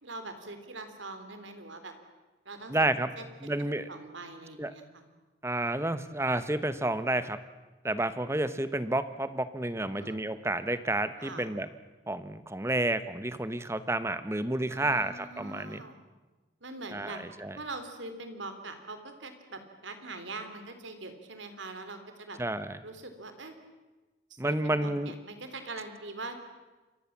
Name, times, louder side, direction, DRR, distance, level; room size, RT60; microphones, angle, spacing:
voice 1, 0.0-1.9 2.5-2.8 3.2-5.0 9.8-10.2 11.2-11.5 14.7-16.0 16.6-17.2 17.5-22.4 22.8-23.5 24.3-26.5, right 2 dB, 90° right, 8 dB, 3.5 m, -43 dB
voice 2, 2.7-3.1 3.4-3.9 4.6-4.7 5.4-7.4 7.8-11.7 12.1-15.8 16.9-17.1 17.4-17.5 22.4-22.8 24.4-25.1, right 1 dB, 15° right, 12 dB, 1.0 m, -30 dB
28.0 x 23.0 x 7.4 m, 1.2 s
head